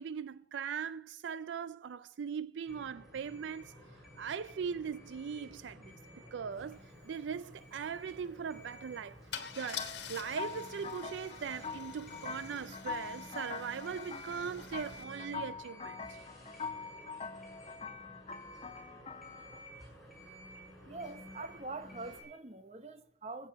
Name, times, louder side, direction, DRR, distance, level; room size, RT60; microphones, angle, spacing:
voice 1, 0.0-3.7 4.2-6.0 6.3-9.2 9.6-16.0 21.4-21.5, right 6 dB, 80° right, 0.4 m, -40 dB
sound 1, 2.7-22.2, equal, ahead, 6.2 m, -53 dB
Car / Engine starting / Idling, 6.7-6.8 7.1-7.3 9.3-15.0, left 8 dB, 70° left, 1.5 m, -47 dB
sound 2, 9.8-19.7, left 5 dB, 30° left, 0.5 m, -44 dB
voice 2, 20.9-23.5, right 3 dB, 35° right, 0.8 m, -44 dB
14.5 x 8.5 x 5.7 m
head